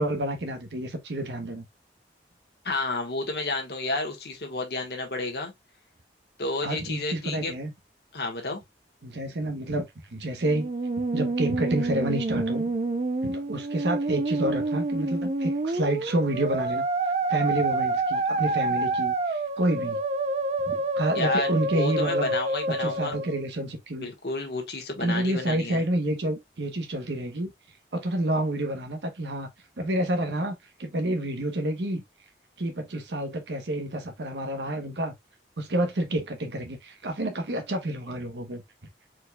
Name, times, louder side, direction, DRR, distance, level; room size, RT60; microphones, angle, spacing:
voice 1, 0.0-1.6 6.6-7.7 9.0-10.7 11.1-12.6 13.2-16.8 17.3-20.0 20.7-22.3 22.7-24.1 25.0-27.5 27.9-29.5 29.8-30.5 30.8-32.0 32.6-35.1 35.6-38.6, right 1 dB, 85° right, 0.9 m, -29 dB
voice 2, 2.6-5.5 6.4-7.5 8.1-8.6 21.1-23.2 24.0-25.8, left 2 dB, 65° left, 1.3 m, -31 dB
Musical instrument, 10.4-23.4, right 2 dB, 40° right, 0.5 m, -28 dB
4.5 x 4.4 x 2.2 m
head